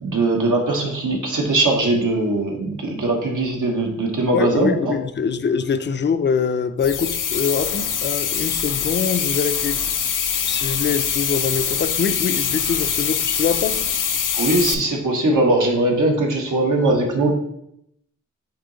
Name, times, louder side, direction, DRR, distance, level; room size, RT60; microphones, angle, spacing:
voice 1, 0.0-4.9 14.4-17.3, right 2 dB, 80° right, 1.3 m, -20 dB
voice 2, 4.3-9.8 10.4-13.8, left 6 dB, 35° left, 0.4 m, -24 dB
sound 1, 6.8-14.7, left 8 dB, 85° left, 0.6 m, -23 dB
8.6 x 2.9 x 3.9 m
wide cardioid pair, 110°, 31 cm